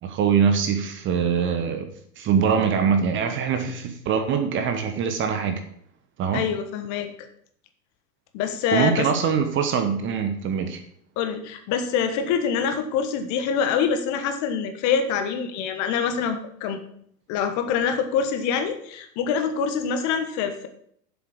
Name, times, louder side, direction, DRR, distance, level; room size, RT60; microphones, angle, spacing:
voice 1, 0.0-1.9 2.2-5.6 6.2-6.4 8.7-10.8, right 7 dB, 25° right, 7 dB, 1.0 m, -23 dB
voice 2, 6.3-7.1 8.3-9.1 11.2-16.8 17.3-20.7, left 7 dB, 35° left, 8 dB, 1.3 m, -25 dB
7.6 x 7.2 x 6.2 m, 0.65 s
figure-of-eight pair, 100°, 49 cm